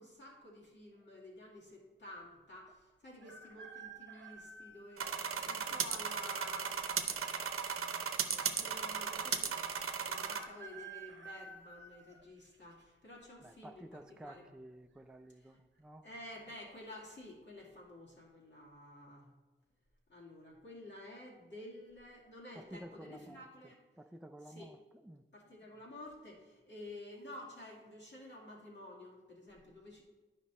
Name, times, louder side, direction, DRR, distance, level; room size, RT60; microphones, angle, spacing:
voice 1, 0.0-6.9 8.2-9.5 10.1-14.5 15.4-15.5 16.0-19.3 20.1-23.8 24.4-24.7 25.3-30.0, left 1 dB, 55° left, -4 dB, 2.4 m, -51 dB
sound 1, 3.2-5.2 5.9-6.0 7.1-7.7 8.0-8.1 8.3-8.4 10.2-12.8 13.4-13.8 14.9-15.3 15.5-15.6 16.1-16.5 17.0-17.2, right 4 dB, 60° right, 0.8 m, -52 dB
sound 2, 5.0-10.4, right 6 dB, 90° right, 0.7 m, -36 dB
voice 2, 13.4-16.0 22.6-23.4 24.0-24.8 25.1-25.2, right 1 dB, 5° right, 7 dB, 0.3 m, -52 dB
10.5 x 5.2 x 4.1 m, 1.3 s
wide cardioid pair, 95°, 21 cm